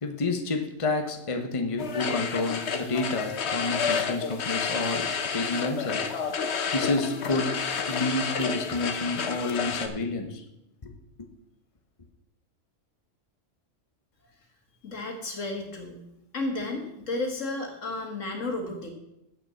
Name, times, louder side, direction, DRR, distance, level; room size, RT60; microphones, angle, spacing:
voice 1, 0.0-6.0 6.7-7.5 7.9-10.4 10.8-10.9, left 3 dB, 30° left, 5 dB, 1.0 m, -29 dB
sound 1, 1.8-9.9, left 6 dB, 60° left, 1.2 m, -30 dB
voice 2, 14.8-16.0 16.3-18.9, left 2 dB, 75° left, 3 dB, 2.2 m, -32 dB
8.1 x 6.8 x 7.6 m, 0.85 s
omnidirectional pair, 1.3 m